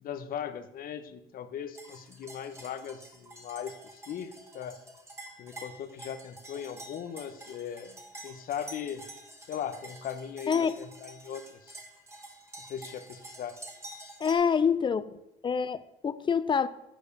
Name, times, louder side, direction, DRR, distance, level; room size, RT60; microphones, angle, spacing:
voice 1, 0.0-4.8 5.4-8.0 8.2-9.0 9.5-10.5 11.0-11.8 12.6-13.6, left 8 dB, 60° left, 0.9 m, -38 dB
sound 1, 1.7-14.3, right 1 dB, 15° right, 1.7 m, -48 dB
voice 2, 14.2-15.0 15.4-16.7, left 6 dB, 30° left, 0.5 m, -26 dB
9.1 x 4.9 x 6.6 m
cardioid pair, 110°, 17 cm